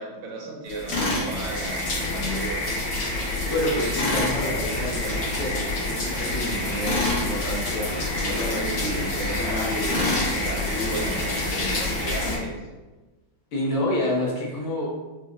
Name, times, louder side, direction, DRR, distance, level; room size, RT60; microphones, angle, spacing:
voice 1, 0.0-2.7 8.2-8.9 9.2-10.1 10.3-12.6, equal, 80° right, -1 dB, 1.4 m, -34 dB
sound 1, 0.7-12.4, left 1 dB, 90° left, 2.1 m, -28 dB
Tools, 0.9-1.3 3.9-4.3 6.8-7.3 9.9-10.3, left 2 dB, 55° left, 0.7 m, -25 dB
voice 2, 3.2-10.3 13.5-14.9, left 1 dB, 70° left, -4 dB, 1.5 m, -29 dB
5.1 x 2.0 x 2.4 m, 1.2 s
omnidirectional pair, 2.3 m